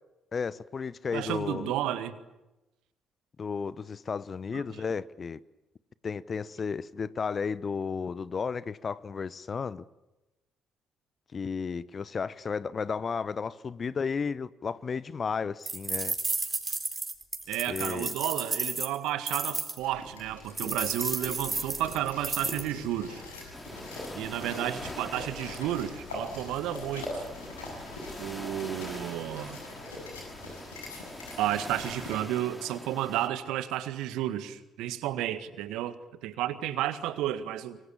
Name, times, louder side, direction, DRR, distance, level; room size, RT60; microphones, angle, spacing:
voice 1, 0.3-1.8 3.4-5.4 6.0-9.8 11.3-16.1 17.7-18.1, left 5 dB, 40° left, 0.9 m, -33 dB
voice 2, 1.1-2.2 4.5-4.6 17.5-23.2 24.2-27.2 28.2-29.6 31.4-36.0 36.2-37.8, right 12 dB, 65° right, 1.8 m, -32 dB
sound 1, 15.7-19.8 20.6-22.7, right 3 dB, 25° right, 4.3 m, -32 dB
sound 2, 19.8-32.2, left 2 dB, 80° left, 7.0 m, -43 dB
sound 3, 23.5-33.3, left 1 dB, 10° left, 3.8 m, -44 dB
25.5 x 24.0 x 8.7 m
figure-of-eight pair, 45°, 0 cm